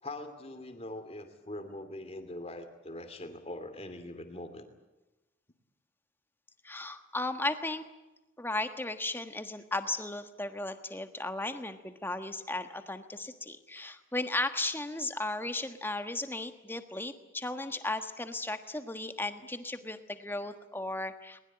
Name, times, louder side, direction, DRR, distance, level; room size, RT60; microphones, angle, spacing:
voice 1, 0.0-4.7 19.4-19.5, left 1 dB, 30° left, 8 dB, 2.8 m, -42 dB
voice 2, 6.6-7.8 8.4-21.4, left 2 dB, 10° left, 8 dB, 1.4 m, -35 dB
22.0 x 20.5 x 8.8 m, 1.0 s
head